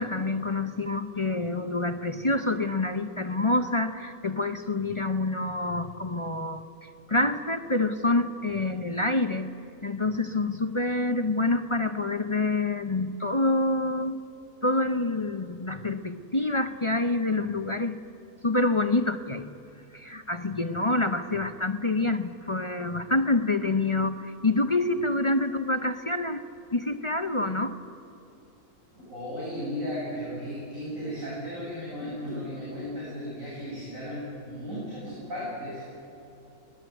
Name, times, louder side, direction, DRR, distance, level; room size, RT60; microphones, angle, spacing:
voice 1, 0.0-6.6 7.1-9.5 9.8-14.2 14.6-18.0 18.4-19.5 19.9-26.4 26.7-27.8, left 2 dB, 35° left, 8 dB, 0.5 m, -27 dB
voice 2, 28.9-35.8, equal, 60° right, -8 dB, 8.5 m, -35 dB
23.0 x 19.0 x 9.2 m, 3.0 s
omnidirectional pair, 1.6 m